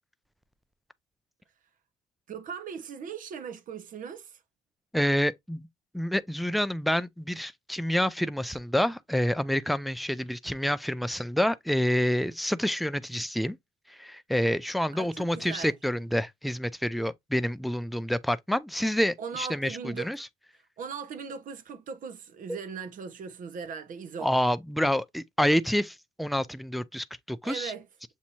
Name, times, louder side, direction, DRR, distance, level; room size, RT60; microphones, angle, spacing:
voice 1, 2.3-4.4 14.9-15.8 19.2-20.1 20.8-24.3 27.4-27.9, right 6 dB, 50° right, 1.0 m, -39 dB
voice 2, 4.9-5.6 5.9-13.6 13.9-20.3 22.5-22.6 24.2-27.7, equal, ahead, 0.3 m, -28 dB
7.2 x 2.6 x 2.8 m
cardioid pair, 110°, 17 cm